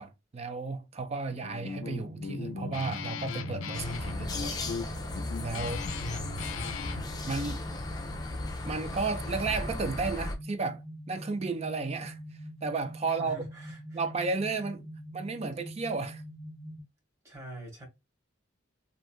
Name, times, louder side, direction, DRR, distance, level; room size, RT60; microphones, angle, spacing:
voice 1, 0.0-4.6 5.4-5.8 7.3-7.6 8.6-12.2 12.6-13.4 13.9-14.8 15.1-16.2, right 4 dB, 30° right, 0.4 m, -33 dB
Guitar, 1.3-7.1, left 4 dB, 85° left, 0.4 m, -38 dB
sound 1, 1.8-16.8, equal, 70° right, 1.4 m, -44 dB
sound 2, 3.7-10.3, left 2 dB, 20° left, 0.5 m, -36 dB
voice 2, 5.6-6.3 13.1-14.0 17.2-17.8, right 2 dB, 15° right, 1.3 m, -45 dB
3.1 x 2.5 x 2.3 m
head